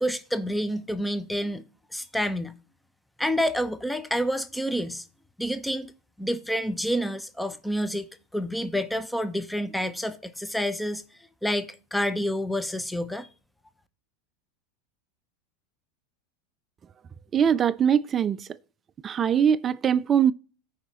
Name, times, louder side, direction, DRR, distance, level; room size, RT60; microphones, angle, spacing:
voice 1, 0.0-1.6 1.9-2.6 3.2-5.0 5.4-5.9 6.2-8.1 8.3-11.0 11.4-13.3, equal, 5° left, 0.7 m, -28 dB
voice 2, 17.3-18.5 19.0-20.3, right 8 dB, 30° right, 0.4 m, -22 dB
14.5 x 4.9 x 2.9 m
hypercardioid pair, 100°, 0 cm